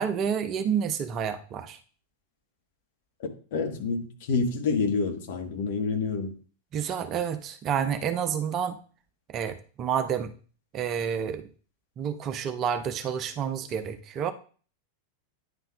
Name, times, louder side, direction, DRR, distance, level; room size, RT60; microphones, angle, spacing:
voice 1, 0.0-1.8 6.7-8.8 9.3-10.3 10.7-11.5 12.0-14.3, right 8 dB, 35° right, 0.7 m, -29 dB
voice 2, 3.5-6.3, left 4 dB, 50° left, 1.4 m, -28 dB
9.7 x 5.6 x 2.4 m
figure-of-eight pair, 90°, 0 cm